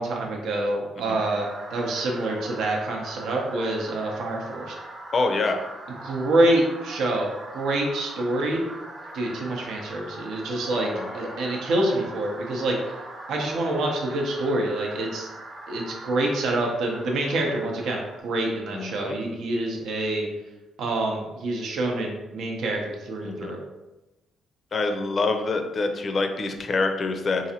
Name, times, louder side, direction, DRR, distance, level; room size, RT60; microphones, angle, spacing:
voice 1, 0.0-4.8 6.0-8.6 9.1-12.9 13.3-15.3 15.7-20.3 20.8-23.6, right 2 dB, 75° right, 0 dB, 0.6 m, -26 dB
sound 1, 1.1-18.2, right 2 dB, 35° right, 0.8 m, -41 dB
voice 2, 5.1-5.7 10.7-11.6 18.7-19.2 23.2-23.5 24.7-27.5, left 3 dB, 45° left, 5 dB, 0.4 m, -26 dB
4.0 x 2.5 x 2.8 m, 1.0 s
cardioid pair, 90°, 0 cm